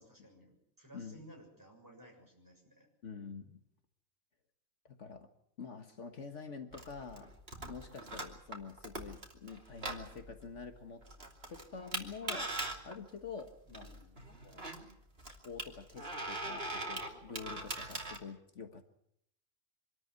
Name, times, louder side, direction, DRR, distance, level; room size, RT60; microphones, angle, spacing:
voice 1, 0.0-2.9 13.7-14.2, right 1 dB, 15° right, 1 dB, 7.0 m, -57 dB
voice 2, 3.0-3.6 4.9-5.3 5.6-11.0 11.5-12.5 12.8-13.9 14.4-14.6 15.3-18.8, left 5 dB, 65° left, 6 dB, 1.8 m, -47 dB
sound 1, 6.7-18.2, right 2 dB, 50° right, 3.1 m, -42 dB
25.5 x 13.0 x 9.6 m, 0.74 s
omnidirectional pair, 1.3 m